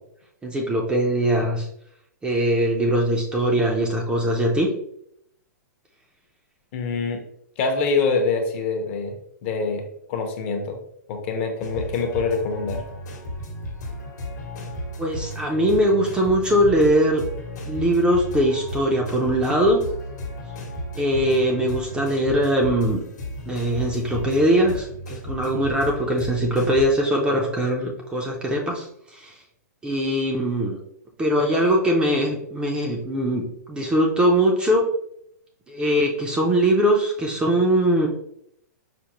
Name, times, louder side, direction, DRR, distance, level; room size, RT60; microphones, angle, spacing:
voice 1, 0.4-1.7 2.2-4.7 15.0-17.2 17.7-19.8 21.0-23.0 23.5-29.3 29.8-30.8 31.2-34.9 35.7-38.1, right 1 dB, 10° right, 0 dB, 0.4 m, -21 dB
voice 2, 6.7-7.2 7.6-9.1 9.4-9.8 10.1-10.8 11.1-12.8, left 4 dB, 40° left, 4 dB, 0.7 m, -25 dB
sound 1, 11.6-26.9, equal, 75° left, 1.0 m, -34 dB
5.0 x 2.0 x 2.9 m, 0.73 s
hypercardioid pair, 140°, 10 cm